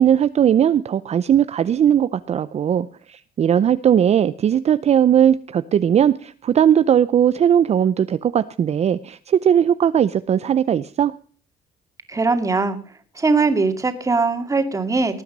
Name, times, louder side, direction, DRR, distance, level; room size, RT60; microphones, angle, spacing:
voice 1, 0.0-11.1, right 9 dB, 40° right, 14 dB, 0.6 m, -18 dB
voice 2, 12.1-12.8 13.2-15.2, right 3 dB, 20° right, 7 dB, 2.3 m, -20 dB
19.0 x 9.1 x 5.4 m, 0.43 s
cardioid pair, 110°, 17 cm